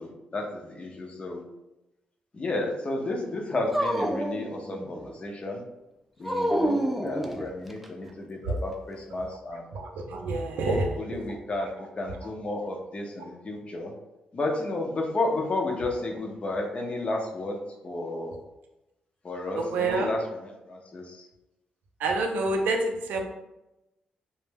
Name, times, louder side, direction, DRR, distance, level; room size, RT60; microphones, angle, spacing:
voice 1, 0.0-1.4 2.3-5.6 6.2-9.8 10.7-13.9 14.3-17.6 17.8-18.3 19.2-21.3, left 2 dB, 40° left, 1 dB, 0.6 m, -32 dB
Dog, 3.7-5.1 6.2-7.9, equal, 5° right, 0.3 m, -28 dB
voice 2, 9.7-10.9 19.6-20.1 22.0-23.2, right 3 dB, 85° right, 3 dB, 0.4 m, -27 dB
2.2 x 2.0 x 3.2 m, 0.96 s
cardioid pair, 60°, 3 cm